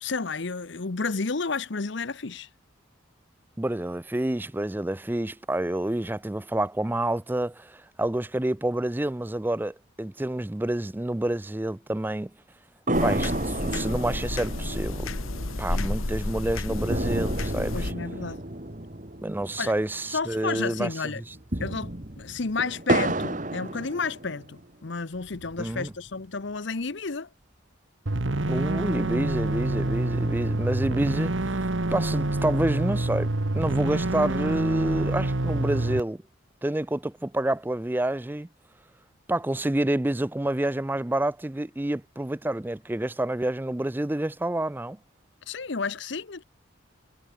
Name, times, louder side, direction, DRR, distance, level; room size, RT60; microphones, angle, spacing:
voice 1, 0.0-2.5 17.7-18.4 19.6-19.7 20.1-21.2 21.6-27.3 45.5-46.4, left 4 dB, 60° left, 0.9 m, -31 dB
voice 2, 3.6-12.3 13.0-15.1 15.6-17.9 19.2-20.9 25.6-25.9 28.5-36.2 36.6-38.5 39.3-45.0, right 1 dB, 10° right, 0.4 m, -28 dB
sound 1, 12.9-17.9, left 2 dB, 80° left, 1.5 m, -31 dB
sound 2, 12.9-20.5 20.7-20.8 21.3-24.6 25.1-26.1, right 1 dB, 40° right, 2.3 m, -31 dB
sound 3, 28.1-36.0, right 2 dB, 65° right, 1.4 m, -27 dB
head